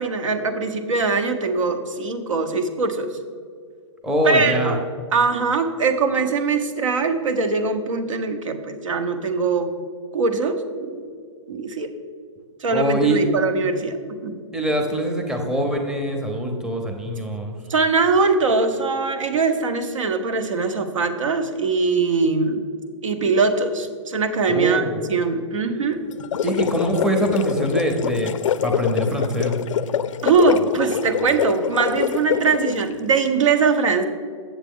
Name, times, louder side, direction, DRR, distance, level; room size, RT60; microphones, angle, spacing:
voice 1, 0.0-3.1 4.2-4.8 5.1-9.7 10.1-11.1 11.5-11.9 12.6-14.4 17.7-22.7 23.0-24.8 25.1-26.0 30.2-34.0, right 4 dB, 85° right, 7 dB, 0.9 m, -22 dB
voice 2, 4.0-4.8 12.7-13.2 14.5-17.5 24.5-25.0 26.4-28.3 28.6-29.6, right 1 dB, 5° right, 2 dB, 0.7 m, -23 dB
sound 1, 26.1-32.9, left 9 dB, 80° left, 0.4 m, -25 dB
8.1 x 7.3 x 3.6 m, 2.1 s
hypercardioid pair, 150°, 16 cm